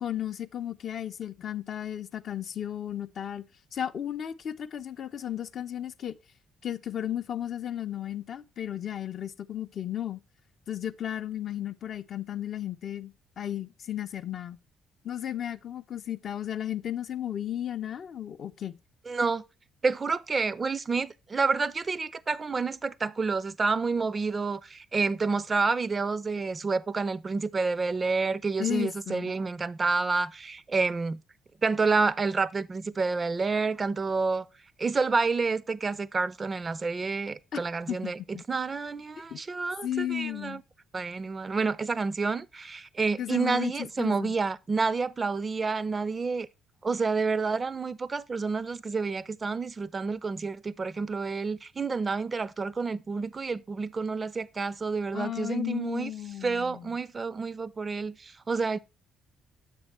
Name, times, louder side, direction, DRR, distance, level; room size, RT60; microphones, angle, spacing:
voice 1, 0.0-3.4 3.7-6.1 6.6-10.2 10.7-14.6 15.0-18.8 28.6-29.3 37.5-37.6 37.9-38.4 39.2-39.4 39.8-40.6 43.2-43.7 44.0-44.4 55.1-56.9, left 11 dB, 50° left, 0.4 m, -34 dB
voice 2, 19.1-19.4 19.8-31.2 31.6-34.5 34.8-40.6 40.9-46.5 46.8-56.1 56.4-58.8, right 4 dB, 30° right, 0.4 m, -29 dB
7.4 x 6.1 x 3.2 m
figure-of-eight pair, 45°, 0 cm